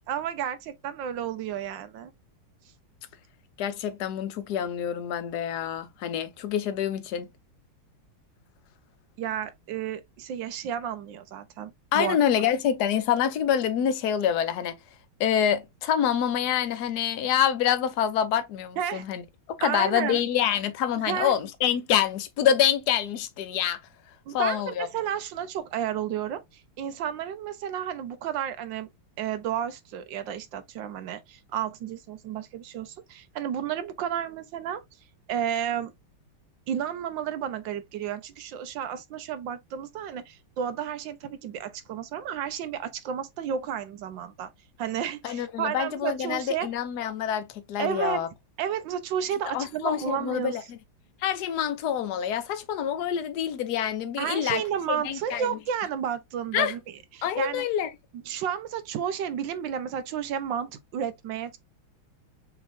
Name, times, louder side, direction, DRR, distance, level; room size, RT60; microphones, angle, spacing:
voice 1, 0.0-2.1 9.2-12.2 18.8-19.0 19.6-20.2 21.1-21.3 24.3-28.9 29.2-34.8 35.3-35.9 36.7-44.5 44.8-46.7 47.8-48.2 48.6-50.6 54.2-56.8 57.1-57.6 58.1-61.6, right 9 dB, 70° right, 1.3 m, -32 dB
voice 2, 3.6-7.3 11.9-14.8 15.2-19.2 19.6-23.8 24.3-24.9 45.2-48.3 49.5-50.8 51.2-54.6 55.0-55.5 56.5-56.7 57.2-57.9, left 9 dB, 60° left, 1.1 m, -26 dB
6.3 x 2.9 x 2.7 m
omnidirectional pair, 2.3 m